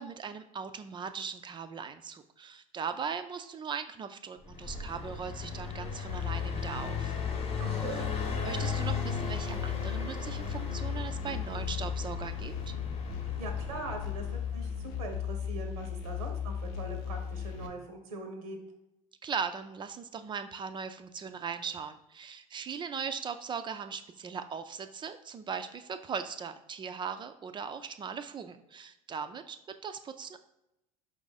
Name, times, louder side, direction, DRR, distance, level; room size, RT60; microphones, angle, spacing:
voice 1, 0.0-7.2 7.9-8.0 8.4-12.5 19.2-29.6 29.8-30.4, right 6 dB, 25° right, 10 dB, 0.3 m, -39 dB
Car passing by, 4.4-15.0, left 5 dB, 35° left, 0.9 m, -37 dB
sound 1, 6.1-17.7, left 8 dB, 65° left, 0.7 m, -36 dB
voice 2, 7.6-8.1 13.4-18.6, right 2 dB, 85° right, 4 dB, 0.7 m, -41 dB
4.8 x 2.5 x 4.0 m, 0.88 s
hypercardioid pair, 75°, 18 cm